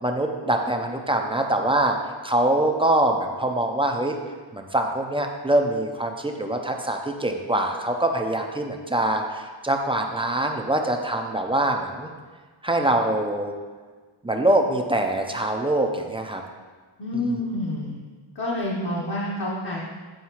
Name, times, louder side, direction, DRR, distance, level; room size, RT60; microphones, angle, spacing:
voice 1, 0.0-2.0 2.2-4.2 4.5-12.1 12.6-13.5 14.2-16.4, right 1 dB, 10° right, 3 dB, 0.4 m, -24 dB
voice 2, 17.0-18.0 18.3-19.8, left 1 dB, 50° left, -5 dB, 0.9 m, -28 dB
7.9 x 4.6 x 2.9 m, 1.4 s
wide cardioid pair, 105°, 49 cm